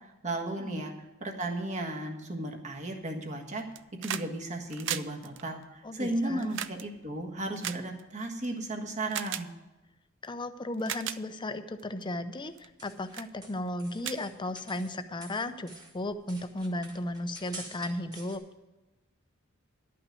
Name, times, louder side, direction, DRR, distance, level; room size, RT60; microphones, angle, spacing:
voice 1, 0.2-0.9 1.2-3.6 4.0-9.5, right 1 dB, 35° right, 2 dB, 1.5 m, -34 dB
sound 1, 3.6-4.3 4.6-8.5 9.1-9.5 10.2-10.3 10.7-11.2 11.8-12.0 12.6-12.8 13.1-13.3 13.7-13.8 14.0-14.9 16.1-16.2, right 11 dB, 60° right, 0.5 m, -37 dB
voice 2, 5.8-6.5 10.2-18.4, left 1 dB, 20° left, 10 dB, 0.6 m, -35 dB
sound 2, 12.5-15.0 15.2-18.4, right 2 dB, 20° right, 1.7 m, -48 dB
11.5 x 5.9 x 9.1 m, 1.1 s
head